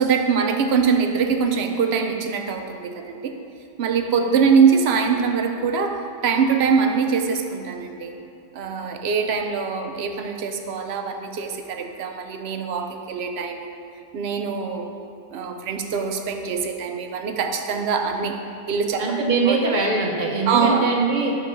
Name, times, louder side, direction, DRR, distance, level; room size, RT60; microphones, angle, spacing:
voice 1, 0.0-3.3 3.8-8.1 8.5-13.8 14.1-14.9 15.3-19.1 19.5-19.6 20.5-21.0, right 6 dB, 70° right, 5 dB, 0.9 m, -23 dB
voice 2, 19.0-21.4, right 3 dB, 45° right, 0 dB, 1.0 m, -22 dB
8.2 x 3.8 x 6.4 m, 2.7 s
omnidirectional pair, 1.1 m